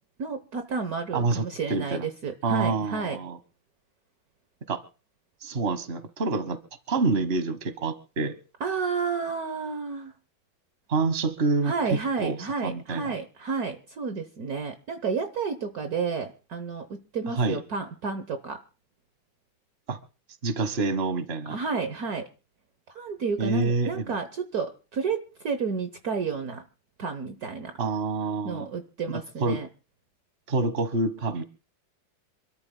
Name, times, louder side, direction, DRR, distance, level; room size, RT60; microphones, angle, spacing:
voice 1, 0.2-3.2 8.6-10.1 11.6-18.6 21.5-22.3 22.9-26.6 27.0-27.7 28.4-29.7, right 5 dB, 55° right, 8 dB, 1.4 m, -31 dB
voice 2, 1.1-1.4 1.7-2.1 2.4-3.4 4.7-4.8 5.4-6.6 6.9-8.4 10.9-12.4 12.6-13.1 17.3-17.6 19.9-20.0 20.4-21.6 23.4-24.1 27.8-28.7 29.4-29.6 30.5-31.4, right 3 dB, 35° right, 12 dB, 1.5 m, -27 dB
27.5 x 13.0 x 2.2 m, 0.35 s
omnidirectional pair, 2.1 m